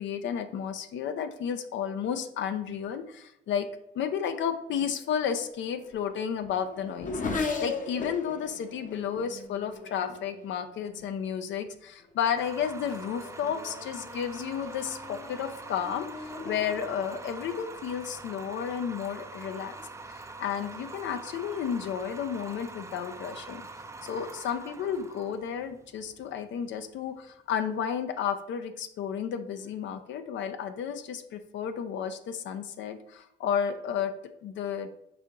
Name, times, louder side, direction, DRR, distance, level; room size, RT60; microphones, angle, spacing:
voice 1, 0.0-3.7 3.9-19.8 20.1-23.6 24.0-34.1 34.4-34.9, left 8 dB, 70° left, 9 dB, 0.5 m, -32 dB
Race car auto racing / Accelerating revving vroom, 5.3-11.2 12.0-12.4 12.8-18.7, left 4 dB, 40° left, 0.7 m, -39 dB
sound 1, 12.4-27.3, right 3 dB, 15° right, 0.4 m, -44 dB
5.0 x 2.8 x 3.5 m, 0.77 s
cardioid pair, 90°, 20 cm